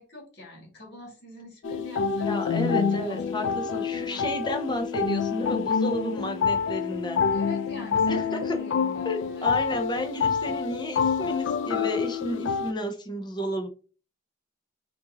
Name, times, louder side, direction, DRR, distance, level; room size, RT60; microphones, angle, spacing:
voice 1, 0.0-3.2 3.6-4.3 7.3-9.6, left 1 dB, 55° left, -1 dB, 2.1 m, -44 dB
sound 1, 1.6-12.7, left 6 dB, 70° left, 0.3 m, -27 dB
voice 2, 2.2-7.2 8.1-8.6 9.0-13.7, equal, 20° left, 3 dB, 0.8 m, -32 dB
4.5 x 2.6 x 3.8 m, 0.37 s
head